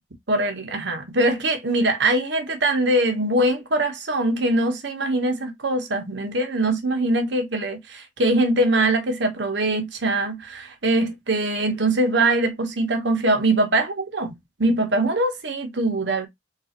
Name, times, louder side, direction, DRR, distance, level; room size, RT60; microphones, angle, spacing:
voice 1, 0.3-16.3, right 2 dB, 80° right, 1.0 m, -22 dB
3.7 x 2.4 x 2.8 m
head